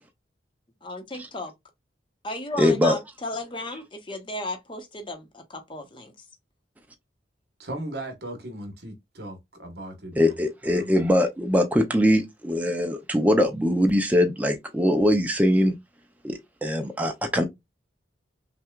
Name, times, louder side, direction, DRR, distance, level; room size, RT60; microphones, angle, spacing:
voice 1, 0.8-1.5 2.2-6.3, left 2 dB, 30° left, 0.9 m, -35 dB
voice 2, 2.6-3.0 10.2-15.7 16.2-17.4, equal, 10° right, 0.5 m, -22 dB
voice 3, 7.6-10.4 10.6-11.1, right 1 dB, 60° right, 1.3 m, -37 dB
5.8 x 2.3 x 2.3 m
head